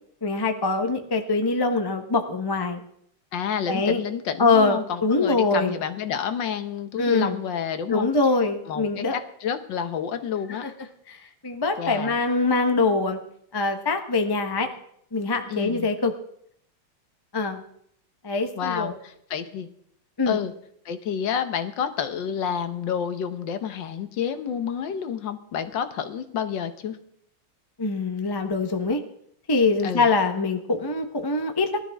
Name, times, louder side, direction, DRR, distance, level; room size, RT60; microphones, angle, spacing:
voice 1, 0.2-2.8 3.7-4.0 4.4-5.7 7.0-7.4 7.9-9.2 10.6-10.7 11.1-13.2 13.5-14.7 15.1-16.1 17.3-17.6 18.2-18.9 20.2-20.4 27.8-29.0 29.5-31.8, left 3 dB, 25° left, 6 dB, 0.5 m, -23 dB
voice 2, 3.3-8.1 8.7-10.6 11.8-12.1 15.5-15.9 18.6-19.7 20.3-20.5 20.8-27.0 29.8-30.1, left 8 dB, 65° left, 10 dB, 1.6 m, -29 dB
19.5 x 12.5 x 3.5 m, 0.68 s
omnidirectional pair, 2.4 m